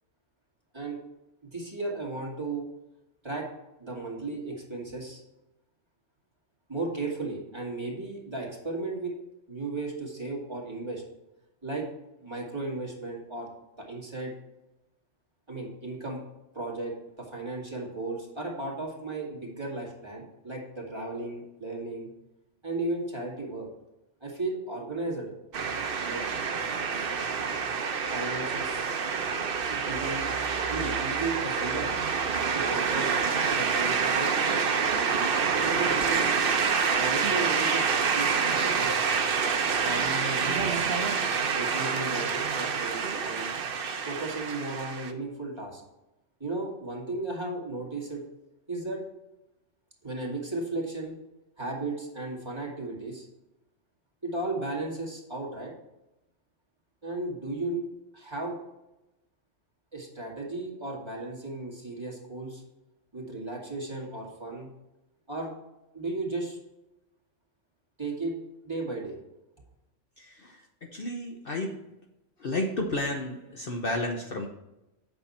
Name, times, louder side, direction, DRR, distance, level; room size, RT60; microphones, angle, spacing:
voice 1, 1.4-2.7 3.2-3.5 3.8-5.2 6.7-9.1 9.5-11.0 11.6-11.9 12.2-13.5 13.8-14.3 15.5-16.2 16.5-22.1 22.6-23.7 24.2-25.3 26.0-26.2 26.9-27.1 28.1-28.8 29.7-30.3 30.7-31.9 32.5-36.3 36.9-38.9 39.8-41.0 41.6-43.5 44.1-45.8 46.4-48.2 48.7-49.0 50.0-51.1 51.6-53.3 54.2-55.7 57.0-57.8 58.1-58.6 59.9-62.6 63.1-64.7 65.3-65.5 65.9-66.6 68.0-68.4 68.6-69.2, right 2 dB, 20° right, -3 dB, 2.2 m, -35 dB
sound 1, 25.5-45.1, right 5 dB, 50° right, 0.9 m, -27 dB
voice 2, 70.2-71.7 72.4-74.5, left 1 dB, 50° left, 1 dB, 1.0 m, -32 dB
8.6 x 6.8 x 4.3 m, 0.94 s
omnidirectional pair, 1.3 m